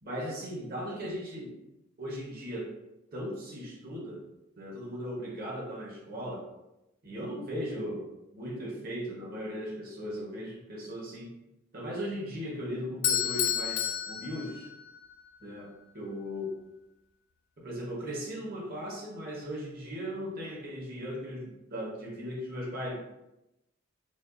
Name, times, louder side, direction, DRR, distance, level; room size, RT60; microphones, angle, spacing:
voice 1, 0.0-1.6 2.0-2.7 3.1-4.2 4.6-6.5 7.0-11.3 11.7-14.7 15.4-16.5 17.6-23.0, equal, 45° right, -3 dB, 1.0 m, -37 dB
Bell / Doorbell, 13.0-15.1, left 9 dB, 70° left, 0.4 m, -30 dB
5.0 x 2.3 x 2.5 m, 0.92 s
head